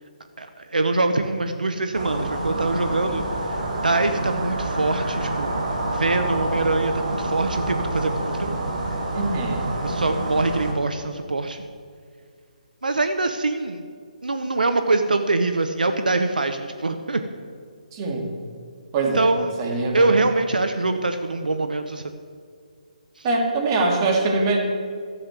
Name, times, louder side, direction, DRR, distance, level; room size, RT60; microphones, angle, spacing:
voice 1, 0.4-3.2 3.8-5.6 5.9-8.5 9.8-11.6 12.8-13.8 14.2-17.2 19.1-19.5 19.9-22.2 23.2-23.3, right 2 dB, 80° right, 8 dB, 0.8 m, -24 dB
sound 1, 1.9-10.7, right 1 dB, 60° right, 3.6 m, -27 dB
voice 2, 9.1-9.6 17.9-18.3 18.9-19.3 19.6-20.2 23.2-24.6, right 3 dB, 30° right, 1 dB, 2.3 m, -23 dB
13.0 x 7.7 x 8.0 m, 2.1 s
figure-of-eight pair, 145°, 4 cm